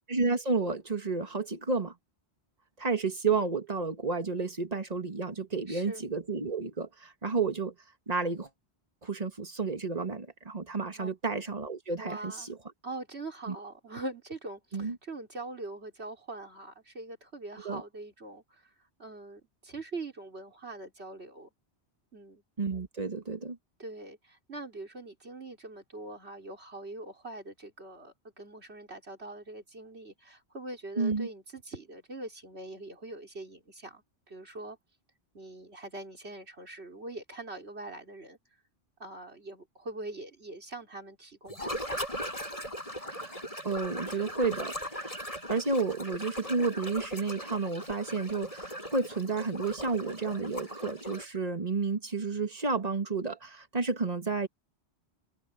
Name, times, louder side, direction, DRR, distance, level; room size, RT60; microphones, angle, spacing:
voice 1, 0.1-1.9 2.8-7.7 8.1-8.5 9.0-12.6 13.5-13.6 14.7-15.0 17.6-17.8 22.6-23.6 31.0-31.3 43.0-45.2 45.5-54.5, right 4 dB, 35° right, 2.0 m, -31 dB
voice 2, 5.7-6.0 10.9-11.1 12.0-12.5 12.8-18.7 19.0-21.5 22.1-22.4 23.8-34.8 35.3-38.4 39.0-42.0, right 2 dB, 75° right, 4.6 m, -43 dB
sound 1, 41.5-51.4, equal, 30° left, 8.0 m, -39 dB
omnidirectional pair, 1.1 m